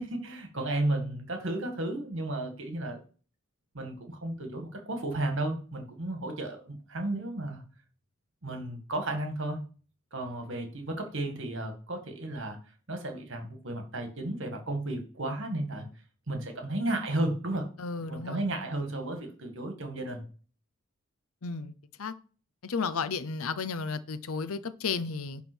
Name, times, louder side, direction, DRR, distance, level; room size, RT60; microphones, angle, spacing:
voice 1, 0.0-3.0 3.7-7.6 8.4-9.6 10.1-12.6 12.9-15.9 16.3-17.7 18.1-20.2, right 1 dB, 55° right, 1.9 m, -33 dB
voice 2, 17.8-18.5 21.4-21.7 22.0-22.1 22.6-25.4, left 4 dB, 70° left, 0.6 m, -33 dB
10.5 x 3.6 x 6.2 m
head